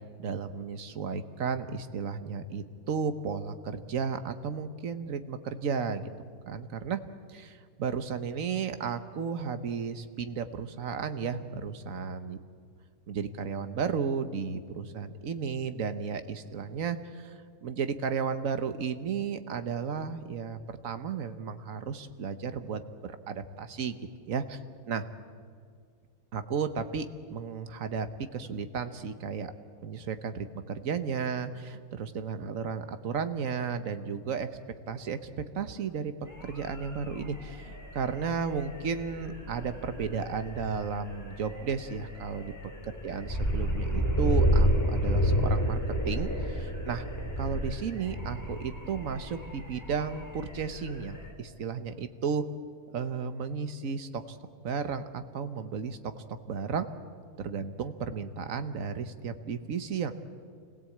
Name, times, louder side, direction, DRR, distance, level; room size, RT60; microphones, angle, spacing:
voice 1, 0.2-6.1 6.5-7.0 7.3-12.4 13.1-24.0 24.3-24.6 24.9-25.0 26.3-28.1 28.3-29.5 29.8-34.5 34.9-42.5 43.0-45.8 46.0-47.1 47.4-52.4 52.9-54.4 54.6-56.1 56.5-56.9 57.4-60.1, right 6 dB, 65° right, 10 dB, 1.4 m, -34 dB
sound 1, 36.3-51.3, equal, 10° left, 3.0 m, -31 dB
26.5 x 16.5 x 8.5 m, 2.1 s
omnidirectional pair, 1.5 m